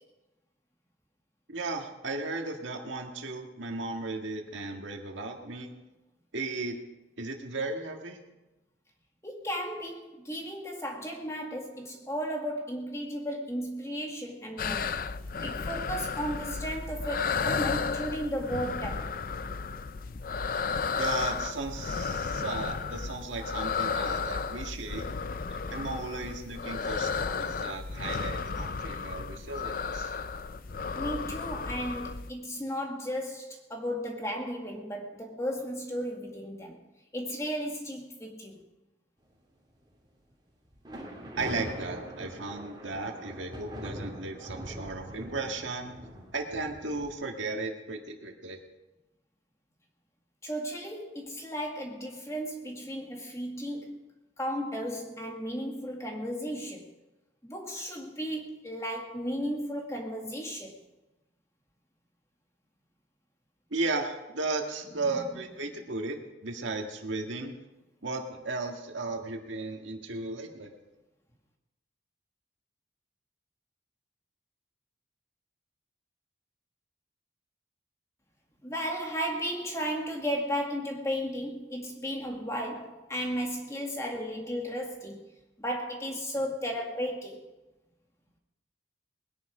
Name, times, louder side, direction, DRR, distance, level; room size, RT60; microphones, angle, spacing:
voice 1, 1.5-5.7 6.3-6.8 7.2-8.2 21.0-25.1 25.5-30.1 41.4-46.0 46.3-48.6 63.7-67.5 68.0-70.8, right 3 dB, 85° right, 3 dB, 1.8 m, -35 dB
voice 2, 9.2-15.0 15.4-19.1 31.0-36.8 37.1-38.6 50.4-56.9 57.4-60.8 65.1-65.3 78.6-85.2 85.6-87.4, equal, 15° left, 1 dB, 2.0 m, -34 dB
sound 1, 14.6-32.3, left 5 dB, 50° left, 0.4 m, -33 dB
sound 2, 40.7-47.1, right 1 dB, 25° right, 2.8 m, -42 dB
20.5 x 10.5 x 4.9 m, 1.0 s
head